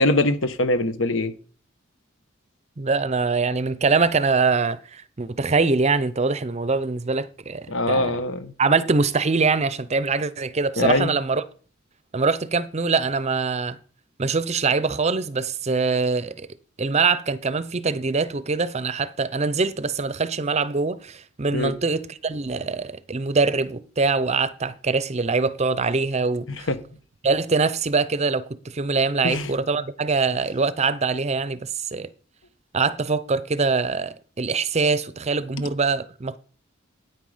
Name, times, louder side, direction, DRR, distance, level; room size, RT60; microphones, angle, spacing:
voice 1, 0.0-1.3 7.7-8.5 10.8-11.1 21.5-21.7 26.5-26.8 29.2-29.5, left 2 dB, 70° left, 1.1 m, -22 dB
voice 2, 2.8-8.1 8.6-11.4 12.1-13.8 14.2-16.5 16.8-26.7 27.2-32.1 32.7-36.4, right 4 dB, 35° right, 0.6 m, -23 dB
9.3 x 9.2 x 5.0 m
head